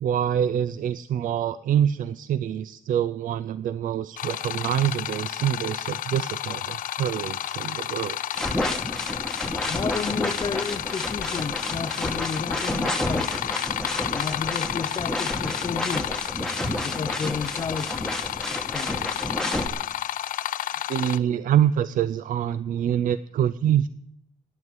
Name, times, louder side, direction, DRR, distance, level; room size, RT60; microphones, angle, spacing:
voice 1, 0.0-8.2 20.9-23.9, right 10 dB, 75° right, 0.4 m, -25 dB
sound 1, 4.2-21.2, left 12 dB, 85° left, 0.5 m, -31 dB
sound 2, 8.3-19.7, left 1 dB, 5° left, 1.2 m, -30 dB
voice 2, 9.7-13.5 14.1-16.2 16.7-18.1 18.5-19.2, left 5 dB, 30° left, 0.5 m, -32 dB
11.0 x 9.1 x 9.5 m
cardioid pair, 125°, 14 cm